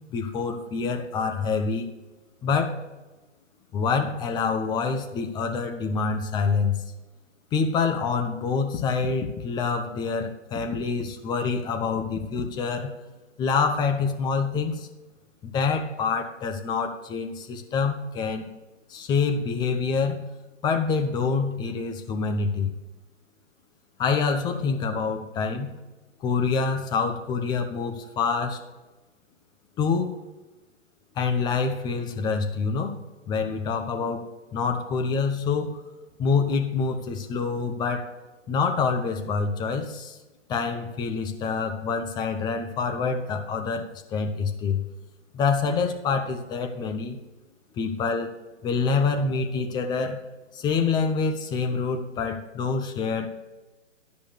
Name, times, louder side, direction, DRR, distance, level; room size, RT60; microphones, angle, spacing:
voice 1, 0.1-1.9 2.4-2.8 3.7-6.8 7.5-13.0 13.4-14.9 15.4-18.4 18.9-20.3 20.6-22.7 24.0-25.7 26.2-28.6 29.8-30.2 31.2-35.8 36.2-38.1 38.5-40.2 40.5-43.8 44.1-44.8 45.3-47.2 47.8-48.3 48.6-50.2 50.5-53.3, left 5 dB, 10° left, 5 dB, 0.6 m, -26 dB
11.5 x 5.1 x 6.4 m, 1.1 s
hypercardioid pair, 130°, 37 cm